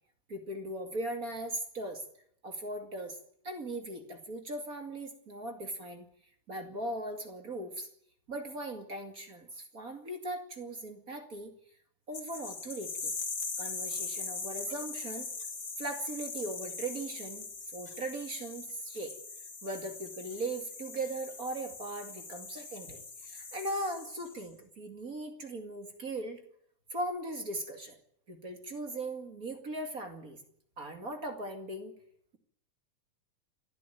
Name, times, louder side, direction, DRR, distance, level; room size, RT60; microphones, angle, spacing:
voice 1, 0.3-2.0 2.4-3.2 3.4-6.1 6.5-7.9 8.3-11.5 12.1-13.1 13.6-15.3 15.8-19.1 19.6-26.4 26.9-28.0 28.3-30.4 30.8-31.9, right 1 dB, 30° right, 5 dB, 2.2 m, -39 dB
sound 1, 12.1-24.5, left 4 dB, 35° left, 3.3 m, -41 dB
28.5 x 12.5 x 9.2 m, 0.70 s
omnidirectional pair, 3.8 m